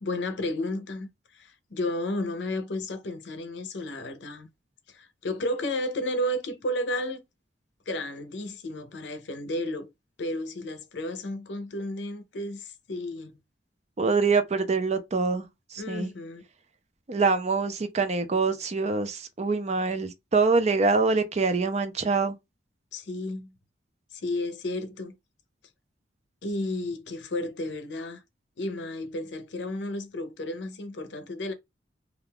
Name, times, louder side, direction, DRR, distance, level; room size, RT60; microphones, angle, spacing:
voice 1, 0.0-4.5 4.9-7.2 7.9-9.9 10.2-13.4 15.8-16.4 22.9-23.5 24.1-25.1 26.4-28.2 28.6-31.5, left 1 dB, 75° left, 0.6 m, -32 dB
voice 2, 14.0-16.1 17.1-22.4, right 4 dB, 40° right, 0.5 m, -25 dB
2.4 x 2.2 x 3.4 m
head